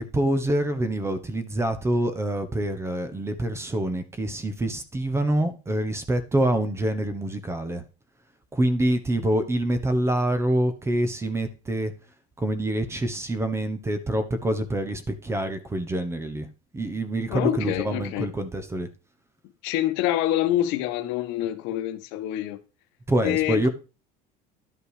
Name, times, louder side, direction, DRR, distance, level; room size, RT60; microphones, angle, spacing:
voice 1, 0.0-7.8 8.5-11.9 12.4-16.5 16.7-18.9 23.1-23.7, right 1 dB, 15° right, 1.1 m, -26 dB
voice 2, 17.3-18.3 19.6-22.6 23.2-23.7, left 13 dB, 75° left, 1.3 m, -26 dB
11.5 x 5.7 x 5.0 m
cardioid pair, 140°, 19 cm